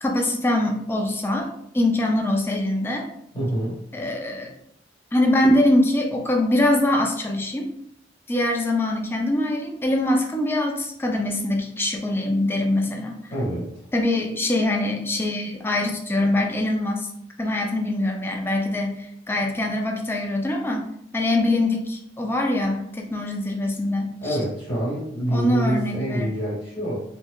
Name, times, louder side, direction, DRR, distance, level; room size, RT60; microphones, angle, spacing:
voice 1, 0.0-1.5 1.7-3.1 3.9-4.5 5.1-7.7 8.3-13.2 13.9-17.1 17.4-20.9 21.1-24.4 25.3-26.3, left 1 dB, 10° left, 1 dB, 0.3 m, -23 dB
voice 2, 3.3-3.8 13.3-13.7 24.2-27.0, right 1 dB, 30° left, -6 dB, 1.1 m, -26 dB
2.8 x 2.0 x 2.2 m, 0.71 s
head